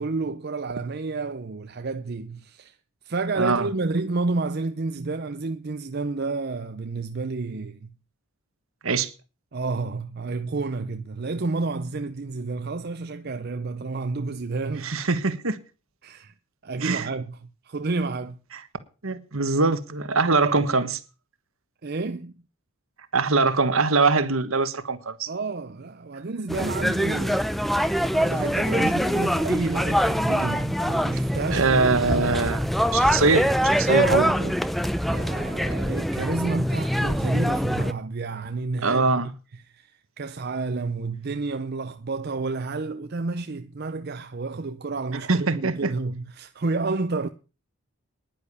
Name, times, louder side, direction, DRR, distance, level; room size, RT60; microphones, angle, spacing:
voice 1, 0.0-2.7 3.0-7.9 9.5-15.0 16.0-16.3 16.6-17.4 17.7-18.4 20.4-20.7 21.8-22.3 25.3-27.4 28.1-31.8 33.9-34.4 35.1-39.1 39.7-39.9 40.2-47.3, right 3 dB, 45° right, 0.6 m, -30 dB
voice 2, 3.3-3.7 8.8-9.1 14.8-15.6 16.8-17.1 18.5-18.6 19.0-21.0 23.1-25.3 31.5-32.7 32.9-34.5 38.8-39.3 45.3-45.9, right 3 dB, 65° right, 1.4 m, -23 dB
sound 1, 26.5-37.9, equal, ahead, 0.6 m, -24 dB
10.5 x 9.8 x 6.9 m
head